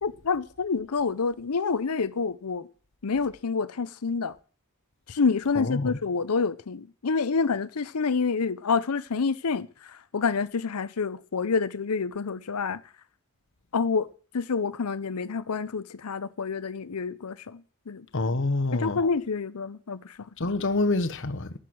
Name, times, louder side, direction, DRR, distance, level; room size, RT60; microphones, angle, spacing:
voice 1, 0.0-2.7 3.0-4.4 5.1-12.8 13.7-14.1 14.3-18.1 18.7-20.3, left 5 dB, 80° left, 0.7 m, -28 dB
voice 2, 5.5-6.0 18.1-19.0 20.4-21.5, left 2 dB, 55° left, 1.1 m, -26 dB
14.5 x 11.0 x 6.3 m
head